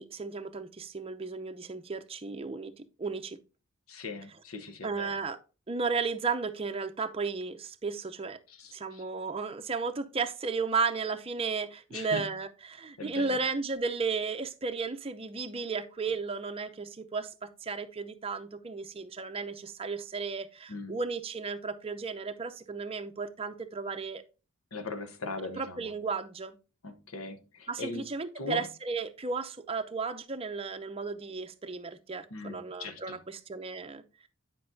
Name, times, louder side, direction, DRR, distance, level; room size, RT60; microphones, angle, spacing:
voice 1, 0.0-3.4 4.8-5.4 5.7-8.4 8.7-24.2 25.6-26.6 27.7-34.0, right 4 dB, 25° right, 0.6 m, -34 dB
voice 2, 3.9-5.2 8.5-9.1 11.9-12.3 13.0-13.4 20.7-21.0 24.7-25.9 26.8-28.1 28.4-28.7 32.3-33.2, left 3 dB, 85° left, 1.0 m, -40 dB
9.8 x 5.2 x 2.7 m
head